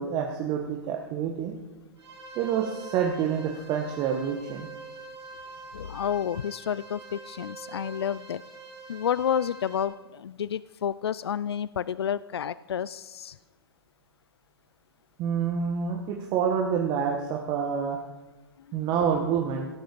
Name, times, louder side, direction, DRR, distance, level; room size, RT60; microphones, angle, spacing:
voice 1, 0.0-1.5 2.3-4.7 15.2-18.0 18.7-19.7, right 7 dB, 35° right, 2 dB, 1.6 m, -27 dB
sound 1, 2.0-9.8, right 3 dB, 75° right, 4.1 m, -45 dB
voice 2, 5.7-8.4 8.9-13.4 18.7-18.9, left 9 dB, 80° left, 18 dB, 0.4 m, -30 dB
17.5 x 7.9 x 6.9 m, 1.2 s
hypercardioid pair, 120°, 13 cm